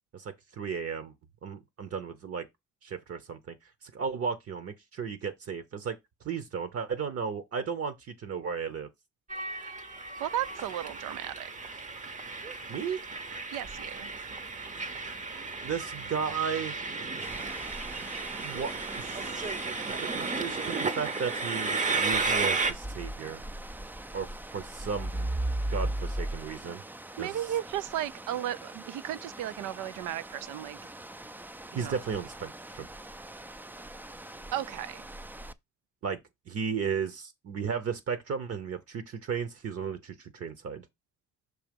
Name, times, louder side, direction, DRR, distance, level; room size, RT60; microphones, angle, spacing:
voice 1, 0.1-1.1 1.4-2.5 2.8-3.5 3.8-6.0 6.2-8.9 12.7-13.0 15.6-16.7 18.4-19.3 20.0-23.4 24.1-25.4 25.7-26.8 27.2-27.4 31.7-32.9 36.0-36.2 36.5-40.8, right 6 dB, 50° right, 0.9 m, -34 dB
Train, 9.3-22.7, right 3 dB, 25° right, 0.7 m, -34 dB
voice 2, 10.2-11.5 13.5-14.1 27.2-30.8 31.7-32.0 34.5-35.1, right 12 dB, 85° right, 0.5 m, -34 dB
sound 1, 17.2-35.5, right 1 dB, 5° right, 0.3 m, -40 dB
6.2 x 2.9 x 5.2 m
cardioid pair, 90°, 30 cm